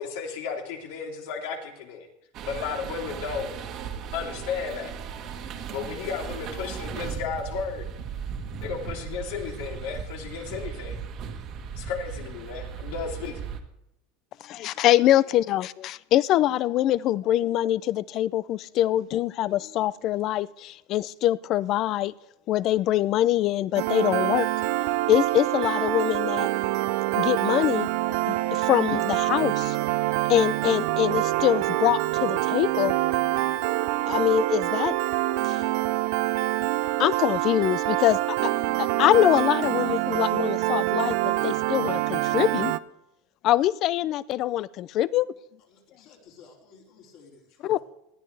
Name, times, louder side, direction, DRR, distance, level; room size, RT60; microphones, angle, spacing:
voice 1, 0.0-2.1 2.4-3.5 4.1-4.9 5.7-7.8 8.6-11.0 11.7-13.4, left 6 dB, 70° left, 1 dB, 3.1 m, -33 dB
sound 1, 2.3-13.6, right 7 dB, 40° right, 1.5 m, -37 dB
voice 2, 14.4-22.1 22.5-24.5 25.1-26.5 27.1-27.9 28.3-29.8 30.3-32.9 34.1-35.0 35.4-35.6 36.4-36.6 37.0-38.5 38.8-42.7 43.4-45.3 47.6-47.8, left 13 dB, 40° left, 20 dB, 0.4 m, -24 dB
Piano, 23.8-42.8, right 17 dB, 65° right, 0.5 m, -26 dB
voice 3, 45.7-47.8, left 5 dB, 55° left, -3 dB, 4.5 m, -53 dB
19.5 x 13.0 x 3.4 m, 0.84 s
supercardioid pair, 150°, 0 cm